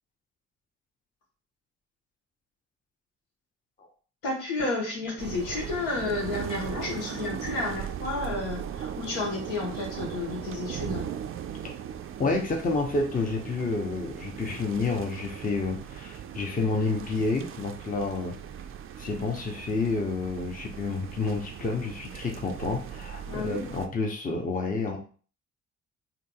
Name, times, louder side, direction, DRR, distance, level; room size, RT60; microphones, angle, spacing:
voice 1, 4.2-11.1 23.3-23.7, left 3 dB, 70° left, -2 dB, 1.2 m, -31 dB
sound 1, 5.2-23.9, right 9 dB, 35° right, 0.4 m, -39 dB
voice 2, 12.2-18.4 19.0-25.0, left 3 dB, 20° left, 2 dB, 0.8 m, -29 dB
3.8 x 2.8 x 2.3 m, 0.40 s
figure-of-eight pair, 40°, 38 cm